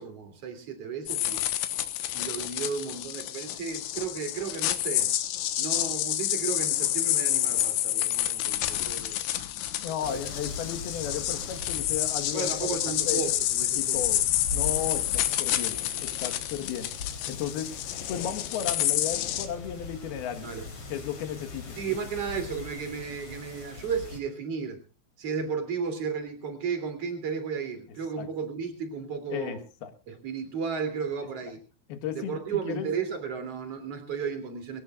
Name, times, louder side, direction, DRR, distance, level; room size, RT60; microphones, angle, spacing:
voice 1, 0.0-1.4 2.1-5.1 5.6-9.2 10.0-10.2 12.3-14.0 20.4-20.7 21.8-24.8 25.2-29.6 30.1-31.6 32.1-34.8, right 6 dB, 35° right, 8 dB, 3.5 m, -34 dB
sound 1, 1.1-19.5, left 13 dB, 85° left, 3.4 m, -29 dB
voice 2, 9.8-12.8 13.1-13.2 13.8-14.2 14.5-16.9 17.3-17.8 18.1-20.5 20.9-21.8 28.2-28.3 29.3-29.9 31.4-31.5 31.9-32.9, left 9 dB, 65° left, 9 dB, 3.1 m, -34 dB
sound 2, 10.0-24.2, left 3 dB, 35° left, 3.8 m, -42 dB
22.5 x 17.5 x 2.4 m, 0.34 s
omnidirectional pair, 5.2 m